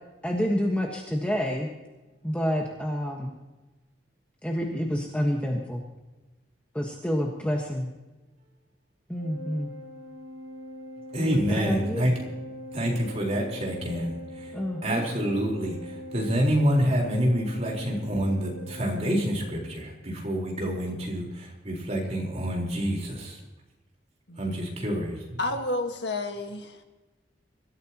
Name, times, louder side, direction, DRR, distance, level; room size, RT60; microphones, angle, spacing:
voice 1, 0.2-1.7 2.2-3.3 4.4-5.8 6.7-7.9 9.1-9.7 11.2-12.1 14.5-15.0, equal, 5° left, -1 dB, 1.4 m, -28 dB
Organ, 9.1-19.9, equal, 70° right, 5.8 m, -42 dB
voice 2, 11.1-12.2 12.7-23.4 24.4-25.4, equal, 35° right, -2 dB, 4.2 m, -27 dB
voice 3, 25.4-26.8, left 2 dB, 65° left, 4 dB, 1.7 m, -30 dB
24.5 x 14.0 x 3.0 m, 1.1 s
head